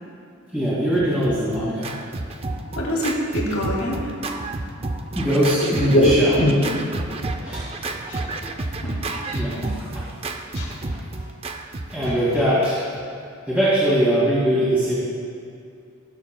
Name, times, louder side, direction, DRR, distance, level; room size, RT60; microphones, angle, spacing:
voice 1, 0.5-2.0 5.1-6.4 7.4-7.6 9.3-10.0 10.8-11.0 11.9-12.8 13.5-14.9, equal, 5° right, -11 dB, 2.2 m, -21 dB
Scratching (performance technique), 0.9-13.0, right 2 dB, 25° right, 0.4 m, -31 dB
voice 2, 2.8-4.1 5.9-6.5 8.1-8.2 8.8-8.9 9.3-9.7 10.6-10.7, equal, 75° left, -3 dB, 2.4 m, -22 dB
18.0 x 7.4 x 2.3 m, 2.3 s
head